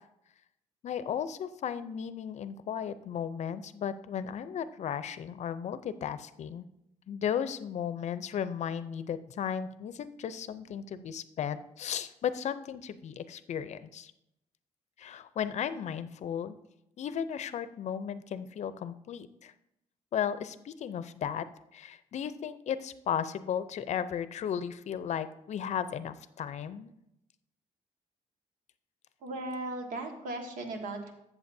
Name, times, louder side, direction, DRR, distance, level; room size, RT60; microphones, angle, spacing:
voice 1, 0.8-6.7 7.1-14.1 15.0-16.6 17.0-19.5 20.1-21.5 21.7-26.9, left 8 dB, 60° left, 13 dB, 0.5 m, -35 dB
voice 2, 29.2-31.1, right 2 dB, 85° right, 3 dB, 1.7 m, -37 dB
13.0 x 7.2 x 2.7 m, 0.82 s
cardioid pair, 100°, 13 cm